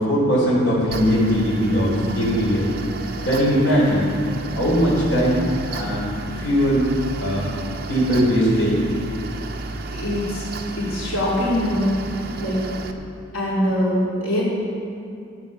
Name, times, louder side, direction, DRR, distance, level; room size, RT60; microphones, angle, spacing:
voice 1, 0.0-2.7 3.2-4.1 4.5-6.1 6.4-6.9 7.2-7.4 7.9-8.9, equal, 70° left, -7 dB, 3.9 m, -20 dB
Mechanical fan, 0.9-12.9, right 3 dB, 50° right, 0.8 m, -32 dB
voice 2, 9.9-10.5 10.8-11.9 12.4-12.6 13.3-14.4, left 1 dB, 90° left, -8 dB, 4.0 m, -23 dB
14.0 x 8.8 x 6.9 m, 2.5 s
head